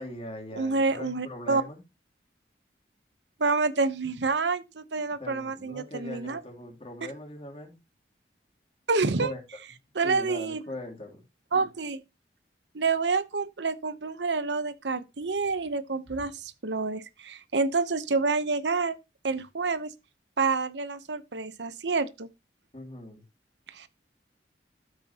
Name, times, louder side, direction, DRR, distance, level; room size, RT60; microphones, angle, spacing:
voice 1, 0.0-1.8 5.2-7.8 9.2-9.6 10.0-11.2 22.7-23.2, left 1 dB, 35° left, 3.1 m, -41 dB
voice 2, 0.5-1.6 3.4-6.4 8.9-9.3 9.9-10.6 11.5-12.0 12.7-19.0 19.2-19.9 20.4-22.3 23.7-23.9, right 4 dB, 80° right, 0.9 m, -28 dB
12.5 x 9.1 x 2.9 m
head